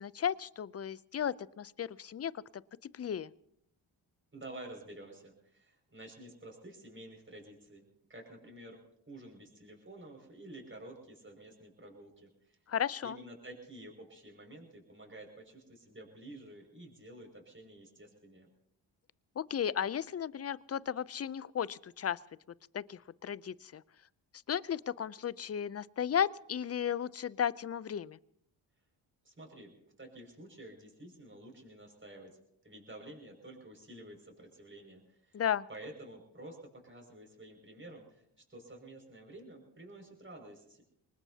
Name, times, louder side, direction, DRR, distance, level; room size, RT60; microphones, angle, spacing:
voice 1, 0.0-2.6 2.9-3.3 12.7-13.2 19.4-22.2 22.7-23.8 24.5-28.2 35.3-35.7, left 8 dB, 30° left, 20 dB, 0.5 m, -34 dB
voice 2, 4.3-7.8 8.1-12.6 13.0-18.5 29.2-29.7 30.0-32.3 32.6-35.4 35.7-40.8, right 1 dB, 25° right, 1 dB, 6.0 m, -50 dB
24.0 x 20.0 x 2.8 m, 0.75 s
cardioid pair, 60°, 48 cm